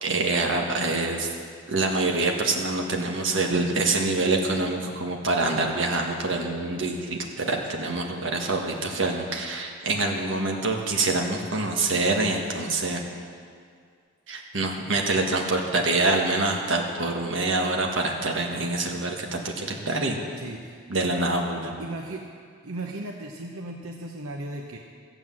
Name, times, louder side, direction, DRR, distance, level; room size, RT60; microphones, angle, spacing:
voice 1, 0.0-1.3 1.7-13.0 14.3-20.2 20.9-21.7, right 2 dB, 65° right, 1 dB, 1.6 m, -25 dB
voice 2, 20.4-20.9 21.8-22.3 22.6-24.8, right 2 dB, 85° right, 1 dB, 0.9 m, -36 dB
15.0 x 7.9 x 7.5 m, 2.1 s
head